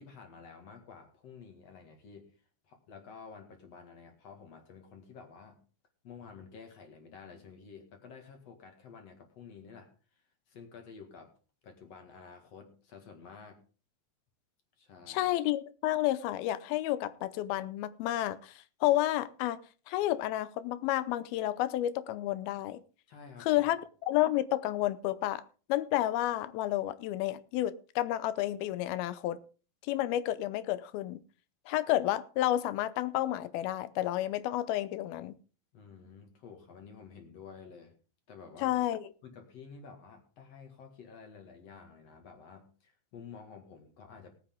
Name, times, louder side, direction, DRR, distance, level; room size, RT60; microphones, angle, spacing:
voice 1, 0.0-2.3 2.6-5.6 6.0-11.3 11.6-13.6 14.8-15.3 23.1-23.6 35.7-37.9 38.3-38.8 39.2-44.4, left 5 dB, 50° left, 2.6 m, -51 dB
voice 2, 15.1-18.5 18.8-19.6 19.9-22.8 23.5-25.4 25.7-29.4 29.9-31.2 31.7-35.3 38.6-39.0, left 14 dB, 85° left, 2.6 m, -30 dB
18.5 x 8.7 x 3.7 m
omnidirectional pair, 4.3 m